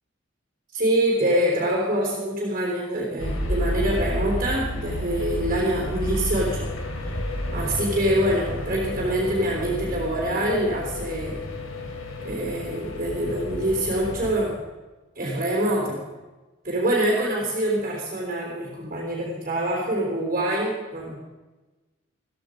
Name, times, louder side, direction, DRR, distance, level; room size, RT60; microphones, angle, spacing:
voice 1, 0.7-6.7 7.0-7.1 7.5-11.4 12.2-14.6 15.2-16.0 16.6-21.2, right 1 dB, 40° right, -2 dB, 3.7 m, -25 dB
sound 1, 3.2-14.4, left 1 dB, 90° left, 3.0 m, -30 dB
15.5 x 14.5 x 5.2 m, 1.2 s
head